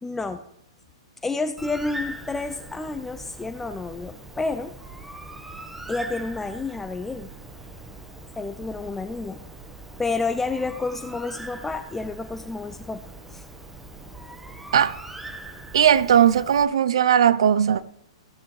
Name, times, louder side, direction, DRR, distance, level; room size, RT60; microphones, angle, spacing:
voice 1, 0.0-0.4 1.2-4.8 5.4-5.5 5.9-7.3 8.4-9.4 10.0-13.0 13.3-13.4, left 3 dB, 10° left, 0.5 m, -30 dB
Bird, 1.6-16.6, right 2 dB, 5° right, 1.3 m, -41 dB
voice 2, 15.7-17.8, right 9 dB, 70° right, 0.6 m, -18 dB
15.5 x 13.0 x 3.2 m
hypercardioid pair, 115°, 3 cm